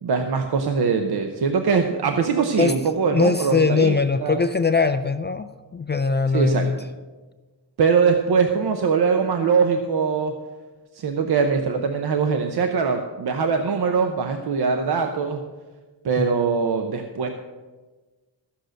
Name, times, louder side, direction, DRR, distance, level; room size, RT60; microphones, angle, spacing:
voice 1, 0.0-3.9 4.2-4.4 6.3-6.7 7.8-10.3 10.9-15.4 16.0-17.3, right 5 dB, 60° right, 5 dB, 0.9 m, -22 dB
voice 2, 3.1-6.8 16.2-16.3, left 4 dB, 25° left, 10 dB, 0.3 m, -21 dB
14.5 x 6.5 x 6.3 m, 1.3 s
wide cardioid pair, 155°, 43 cm